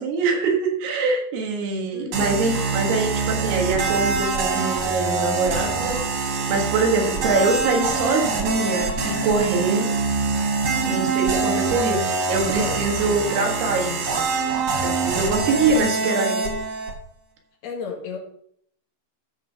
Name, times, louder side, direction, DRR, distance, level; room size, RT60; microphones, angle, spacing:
voice 1, 0.0-9.9 10.8-14.2 14.8-16.4, right 3 dB, 80° right, 2 dB, 3.7 m, -24 dB
voice 2, 1.9-2.5 7.6-7.9 11.3-12.2 12.5-13.2 15.7-16.6 17.6-18.2, left 5 dB, 75° left, 0 dB, 3.8 m, -34 dB
sound 1, 2.1-16.9, right 4 dB, 50° right, 2.1 m, -24 dB
13.0 x 4.9 x 5.4 m, 0.67 s
omnidirectional pair, 4.6 m